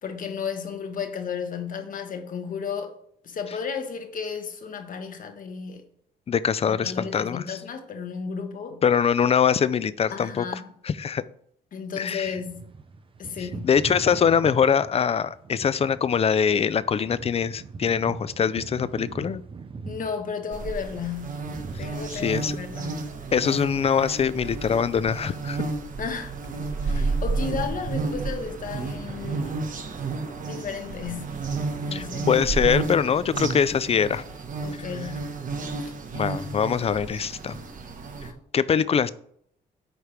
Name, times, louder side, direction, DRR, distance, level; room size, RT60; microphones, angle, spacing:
voice 1, 0.0-2.9 3.2-5.8 6.7-8.8 10.1-10.6 11.7-12.7 13.2-13.7 19.9-21.5 21.8-23.1 26.0-26.3 26.8-29.5 30.4-31.3 31.9-32.4 34.6-35.3 35.8-35.9, left 6 dB, 55° left, 1.2 m, -33 dB
voice 2, 6.3-7.6 8.8-10.5 10.8-11.2 12.0-12.4 13.4-19.4 21.7-21.8 22.1-22.6 23.3-25.6 27.0-27.1 31.9-34.2 34.8-34.9 36.1-37.6 38.5-39.1, left 7 dB, 35° left, 0.4 m, -23 dB
sound 1, 12.2-26.6 26.8-30.6, right 4 dB, 30° right, 0.7 m, -43 dB
sound 2, 20.5-38.3, right 3 dB, 50° right, 1.2 m, -31 dB
9.4 x 3.3 x 5.8 m
cardioid pair, 100°, 17 cm